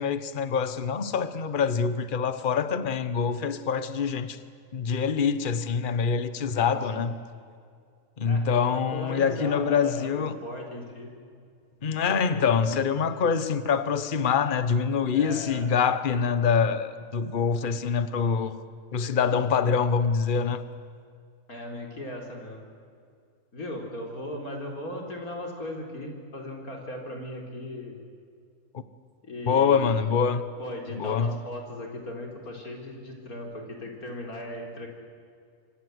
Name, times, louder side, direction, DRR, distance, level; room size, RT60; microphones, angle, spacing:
voice 1, 0.0-4.4 4.7-7.1 8.2-10.4 11.8-18.6 18.9-20.6 29.5-30.4 30.9-31.3, left 6 dB, 40° left, 1.2 m, -25 dB
voice 2, 6.5-7.1 8.3-8.5 8.7-11.1 12.1-12.5 15.1-15.7 16.1-16.3 21.5-22.6 23.5-28.0 29.2-30.0 30.6-34.9, left 1 dB, 75° left, 4.5 m, -38 dB
26.5 x 25.5 x 8.0 m
omnidirectional pair, 1.5 m